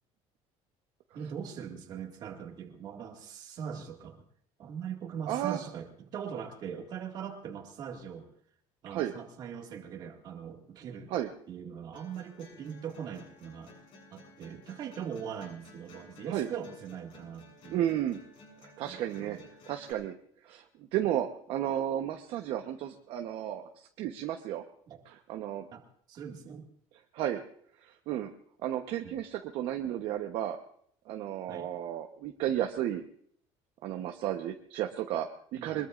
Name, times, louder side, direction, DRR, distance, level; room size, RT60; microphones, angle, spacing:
voice 1, 1.1-4.2 4.6-8.3 8.8-11.1 11.5-13.7 14.1-17.9 18.8-19.5 24.9-25.0 25.7-25.8 26.1-26.7 29.0-29.2 31.5-31.7 35.6-35.9, right 8 dB, 35° right, 2 dB, 2.1 m, -41 dB
voice 2, 5.3-5.6 8.9-9.1 11.1-11.3 16.3-16.5 17.7-18.2 18.6-19.4 19.7-20.1 20.4-20.6 20.9-23.7 24.0-24.6 25.1-25.7 27.1-27.4 27.8-28.3 28.6-30.6 31.1-33.0 33.8-35.9, right 11 dB, 50° right, 4 dB, 1.1 m, -33 dB
sound 1, 11.9-19.9, left 2 dB, 50° left, 7.6 m, -55 dB
23.5 x 21.5 x 2.6 m, 0.63 s
cardioid pair, 180°, 12 cm